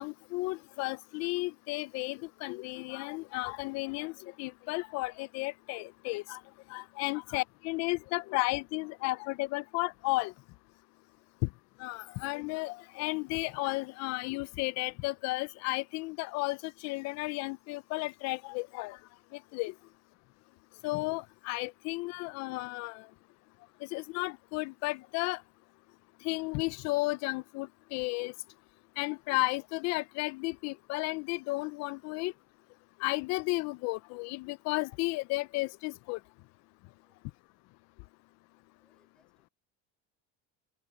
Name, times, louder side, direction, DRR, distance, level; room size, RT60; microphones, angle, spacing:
voice 1, 0.0-6.4 6.7-10.3 11.8-19.0 19.5-19.7 20.8-23.1 23.8-25.4 26.2-28.3 29.0-32.3 33.0-36.2, left 23 dB, 50° left, 0.4 m, -33 dB
voice 2, 11.1-11.4 19.8-20.0 36.9-37.5 38.7-39.5, left 1 dB, ahead, 6.3 m, -78 dB
open air
cardioid pair, 175°, 35 cm